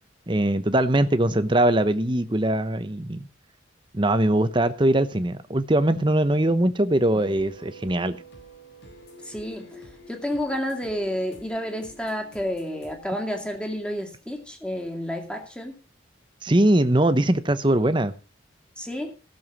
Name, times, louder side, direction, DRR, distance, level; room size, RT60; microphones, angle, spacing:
voice 1, 0.3-3.3 3.9-8.2 16.4-18.1, right 1 dB, 25° right, 0.9 m, -21 dB
sound 1, 7.0-14.4, right 1 dB, 70° left, 7.5 m, -49 dB
voice 2, 9.2-9.8 10.1-15.8 18.8-19.1, equal, 5° left, 2.3 m, -30 dB
16.0 x 7.2 x 6.0 m
head